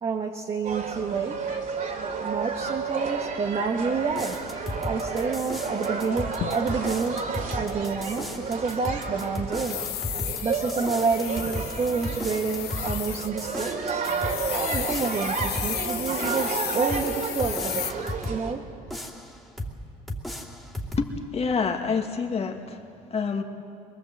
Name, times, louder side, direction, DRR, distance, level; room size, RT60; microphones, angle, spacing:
voice 1, 0.0-1.5 2.2-4.4 4.9-7.3 7.6-9.9 10.4-14.1 14.5-18.7, right 5 dB, 35° right, 2 dB, 1.4 m, -29 dB
sound 1, 0.6-18.5, right 5 dB, 55° right, 3.0 m, -32 dB
sound 2, 4.1-18.4 18.9-19.8 20.1-21.1, left 1 dB, ahead, 2.6 m, -36 dB
sound 3, 6.1-7.1 9.2-13.3 13.6-13.7 14.0-17.9, left 14 dB, 70° left, 0.6 m, -34 dB
voice 2, 21.3-22.8 23.1-23.4, left 5 dB, 35° left, 4 dB, 2.1 m, -27 dB
23.0 x 22.0 x 8.0 m, 2.5 s
cardioid pair, 110°, 17 cm